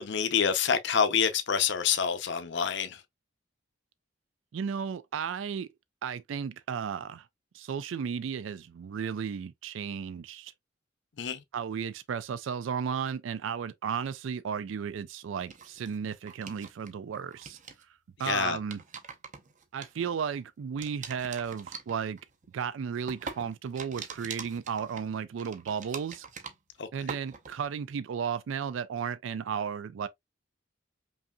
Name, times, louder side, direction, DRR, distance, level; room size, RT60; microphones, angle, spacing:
voice 1, 0.0-3.0 11.2-11.4 18.2-18.6 26.8-27.1, left 7 dB, 65° left, 0.6 m, -27 dB
voice 2, 4.5-5.7 6.0-7.3 7.5-10.5 11.5-17.6 18.2-18.8 19.7-22.2 22.5-26.3 26.9-30.1, right 7 dB, 75° right, 0.4 m, -34 dB
sound 1, 15.4-16.9 17.1-17.8 18.5-20.4 20.8-26.8 27.1-27.7, right 5 dB, 40° right, 0.7 m, -43 dB
5.3 x 2.7 x 2.2 m
head